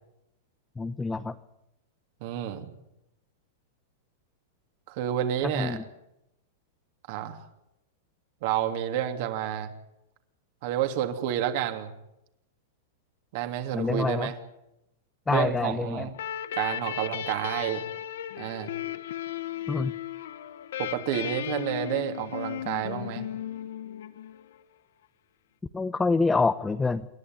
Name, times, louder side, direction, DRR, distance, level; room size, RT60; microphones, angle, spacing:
voice 1, 0.8-1.3 5.4-5.8 13.7-14.3 15.3-16.1 19.7-19.9 25.7-27.1, left 3 dB, 10° left, 9 dB, 0.8 m, -26 dB
voice 2, 2.2-2.7 4.9-5.8 7.1-7.4 8.4-9.7 10.6-11.9 13.3-14.3 15.3-16.1 16.5-17.8 18.4-18.7 20.8-23.3, right 11 dB, 50° right, 6 dB, 2.9 m, -30 dB
sound 1, 16.1-24.6, left 10 dB, 70° left, 1.1 m, -35 dB
27.5 x 11.5 x 9.6 m, 0.87 s
hypercardioid pair, 140°, 0 cm